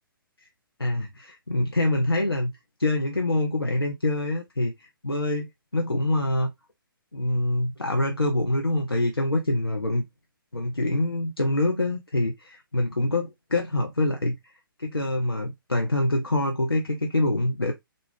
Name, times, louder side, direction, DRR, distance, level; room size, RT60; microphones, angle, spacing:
voice 1, 0.8-2.5 2.8-5.5 5.7-6.5 7.1-10.0 10.5-14.5 14.8-17.7, left 1 dB, 85° left, 0.7 m, -25 dB
3.8 x 2.3 x 3.6 m
figure-of-eight pair, 130°, 12 cm